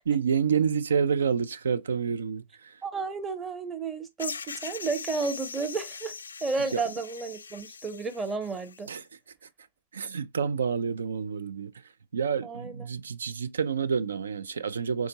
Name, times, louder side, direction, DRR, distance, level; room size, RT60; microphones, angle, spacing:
voice 1, 0.1-2.8 6.7-6.8 8.9-9.1 9.4-9.5 9.9-15.1, right 6 dB, 75° right, 0.4 m, -28 dB
voice 2, 2.8-6.1 6.4-8.9 12.4-12.8, right 4 dB, 20° right, 0.8 m, -32 dB
sound 1, 4.2-8.9, left 5 dB, 80° left, 0.3 m, -41 dB
3.6 x 2.6 x 2.7 m
hypercardioid pair, 110°, 0 cm